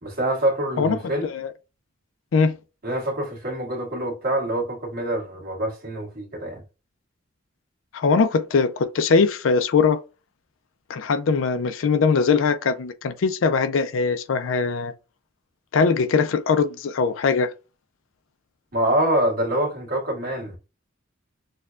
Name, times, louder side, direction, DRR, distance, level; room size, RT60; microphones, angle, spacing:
voice 1, 0.0-1.3 2.8-6.6 18.7-20.6, right 1 dB, 50° right, 1.5 m, -25 dB
voice 2, 0.8-1.5 2.3-2.6 7.9-10.0 10.9-14.9 15.7-17.5, left 5 dB, 75° left, 0.4 m, -21 dB
6.4 x 2.2 x 2.4 m
head